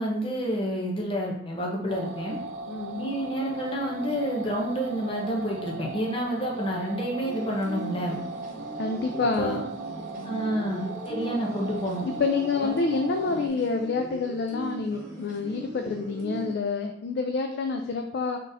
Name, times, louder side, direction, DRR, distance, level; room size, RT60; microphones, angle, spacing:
voice 1, 0.0-2.4 3.0-8.2 9.2-9.6 10.2-12.1 12.6-12.7, equal, 25° left, -1 dB, 0.7 m, -29 dB
sound 1, 1.9-13.5, right 3 dB, 70° right, 0.3 m, -38 dB
voice 2, 2.7-3.1 8.8-9.6 10.2-10.5 12.2-18.4, left 4 dB, 55° left, 4 dB, 0.3 m, -28 dB
sound 2, 7.2-16.5, right 2 dB, 45° right, 1.0 m, -40 dB
3.9 x 3.7 x 2.6 m, 0.73 s
head